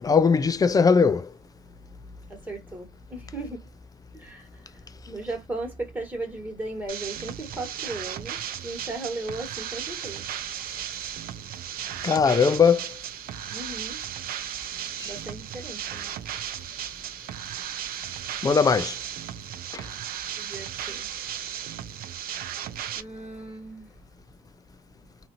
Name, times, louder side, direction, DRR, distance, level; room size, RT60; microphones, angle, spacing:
voice 1, 0.0-1.3 12.0-12.9 15.0-15.1 18.4-19.0 19.7-19.9, left 5 dB, 20° left, 0.4 m, -20 dB
voice 2, 2.3-3.7 4.1-10.3 13.5-14.0 15.0-16.2 20.4-21.1 22.9-23.9, right 2 dB, 10° right, 1.6 m, -37 dB
sound 1, 6.9-23.0, right 10 dB, 60° right, 0.5 m, -35 dB
2.7 x 2.5 x 2.7 m
cardioid pair, 110°, 17 cm